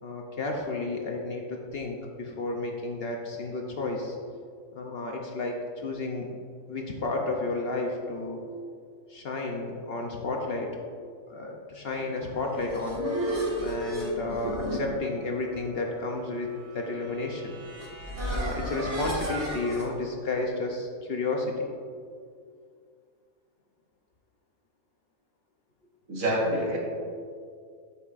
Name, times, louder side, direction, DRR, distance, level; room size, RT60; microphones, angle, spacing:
voice 1, 0.0-4.2 4.7-6.3 6.7-8.4 9.1-10.7 11.3-13.0 13.6-17.6 18.3-21.7, left 3 dB, 55° left, 1 dB, 0.8 m, -32 dB
sound 1, 12.3-19.9, equal, 55° right, 2.0 m, -34 dB
voice 2, 26.1-26.8, right 1 dB, 75° right, -3 dB, 2.0 m, -26 dB
12.5 x 5.5 x 2.5 m, 2.2 s
omnidirectional pair, 1.5 m